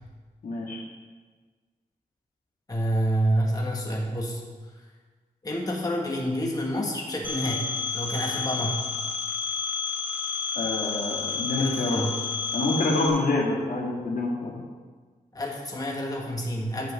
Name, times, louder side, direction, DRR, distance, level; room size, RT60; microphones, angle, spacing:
voice 1, 0.4-0.8 10.6-12.0 12.5-14.6, left 2 dB, 80° left, -2 dB, 2.1 m, -27 dB
voice 2, 2.7-4.4 5.4-8.8 11.6-12.2 15.3-16.9, equal, 25° left, -1 dB, 1.5 m, -28 dB
Telephone, 7.2-13.1, left 5 dB, 10° right, 2.1 m, -30 dB
8.9 x 6.0 x 6.9 m, 1.4 s
wide cardioid pair, 105°, 15 cm